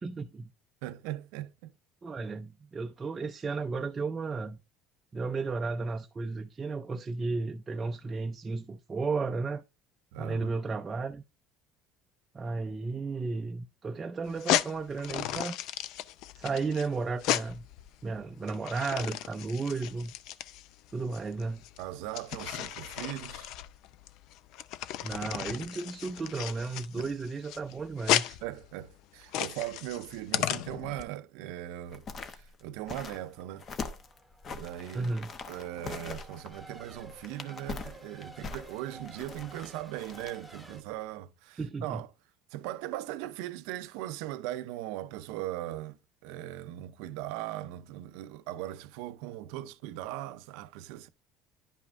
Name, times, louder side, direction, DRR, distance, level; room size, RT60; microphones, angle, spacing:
voice 1, 0.0-0.5 2.0-4.6 5.1-9.6 10.2-11.2 12.3-15.6 16.3-17.7 18.0-20.1 20.9-21.6 25.0-28.4 34.9-35.3 41.6-42.0, right 4 dB, 20° right, 0.5 m, -34 dB
voice 2, 0.8-1.7 10.1-10.5 21.8-23.5 27.0-27.1 28.4-33.7 34.5-35.1 35.5-42.1 42.5-51.1, right 14 dB, 80° right, 0.6 m, -39 dB
sound 1, 14.3-31.0, left 13 dB, 65° left, 0.5 m, -34 dB
sound 2, 31.8-40.7 41.0-41.1, left 4 dB, 35° left, 0.8 m, -42 dB
Race car auto racing / Accelerating revving vroom / Mechanisms, 33.0-40.8, right 1 dB, ahead, 1.2 m, -53 dB
10.5 x 5.4 x 2.5 m
cardioid pair, 130°, 0 cm